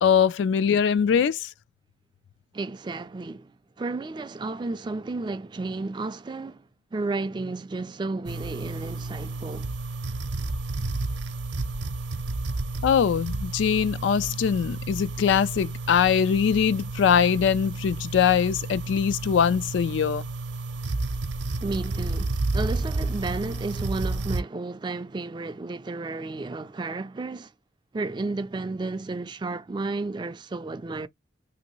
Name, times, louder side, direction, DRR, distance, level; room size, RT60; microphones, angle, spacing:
voice 1, 0.0-1.5 12.8-20.2, left 7 dB, 75° left, 0.3 m, -22 dB
voice 2, 2.5-6.6 6.9-9.7 21.6-27.5 27.9-31.1, right 3 dB, 25° right, 0.3 m, -32 dB
sound 1, 8.3-24.4, right 2 dB, 75° right, 0.7 m, -31 dB
3.0 x 2.7 x 2.9 m
head